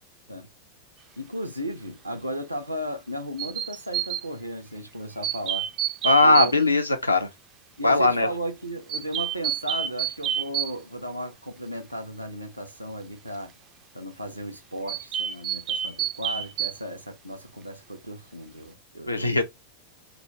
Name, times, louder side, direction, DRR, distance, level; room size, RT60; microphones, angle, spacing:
voice 1, 1.2-5.7 6.2-6.5 7.8-13.5 13.9-19.4, right 1 dB, 85° right, 0.7 m, -35 dB
sound 1, 3.4-4.3 5.2-6.5 8.9-10.8 14.9-16.8, right 10 dB, 35° right, 0.3 m, -28 dB
voice 2, 6.0-7.3 7.8-8.3 19.1-19.4, left 2 dB, 85° left, 0.6 m, -19 dB
3.1 x 3.0 x 2.8 m
figure-of-eight pair, 90°, 0 cm